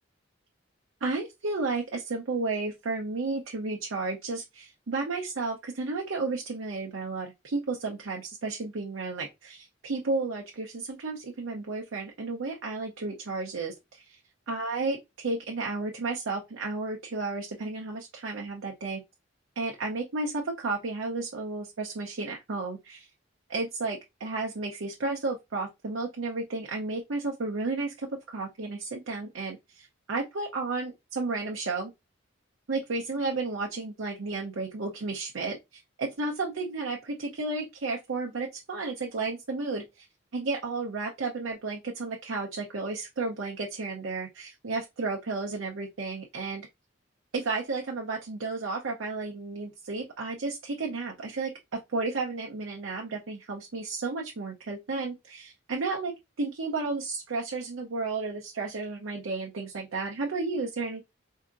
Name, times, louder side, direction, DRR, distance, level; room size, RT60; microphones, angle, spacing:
voice 1, 1.0-14.2 14.5-19.0 19.6-23.1 23.5-31.9 32.7-40.1 40.3-46.7 47.3-56.1 56.4-61.0, right 3 dB, 90° right, 0.7 m, -33 dB
4.5 x 2.8 x 2.5 m
head